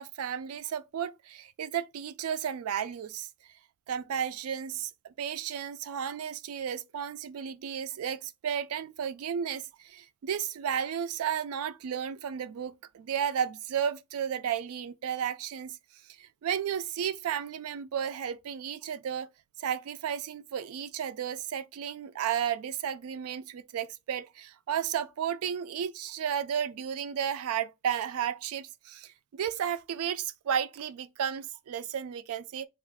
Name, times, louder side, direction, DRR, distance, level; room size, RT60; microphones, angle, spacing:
voice 1, 0.0-3.3 3.9-15.8 16.2-19.3 19.6-32.7, right 8 dB, 85° right, 0.3 m, -33 dB
3.0 x 2.4 x 3.4 m
head